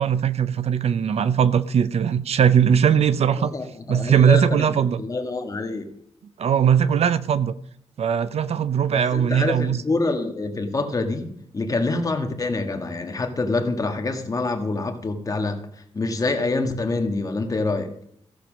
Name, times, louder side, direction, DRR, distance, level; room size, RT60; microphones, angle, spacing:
voice 1, 0.0-3.5 3.9-5.0 6.4-7.6 8.0-9.8, right 8 dB, 65° right, 0.6 m, -20 dB
voice 2, 3.4-5.9 8.9-15.6 15.9-17.9, left 3 dB, 30° left, 1.6 m, -26 dB
15.0 x 7.0 x 6.2 m
wide cardioid pair, 125°, 11 cm